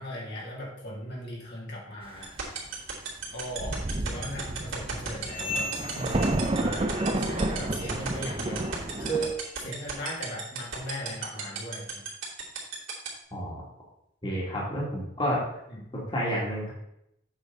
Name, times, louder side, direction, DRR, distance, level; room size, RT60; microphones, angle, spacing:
voice 1, 0.0-2.4 3.3-12.1 15.7-15.9, right 1 dB, 55° left, -4 dB, 2.8 m, -37 dB
sound 1, 2.2-13.1, right 8 dB, 70° right, 2.8 m, -33 dB
Thunder, 3.2-3.3 3.6-9.3, right 2 dB, 25° right, 0.6 m, -31 dB
sound 2, 5.2-7.5 7.7-8.1 8.6-8.8 9.4-9.6 10.2-10.3 11.1-11.2, left 2 dB, 85° left, 2.5 m, -39 dB
voice 2, 13.3-13.6 14.2-15.4 15.9-16.7, equal, 25° left, -5 dB, 2.4 m, -30 dB
8.3 x 6.7 x 4.0 m, 0.78 s
head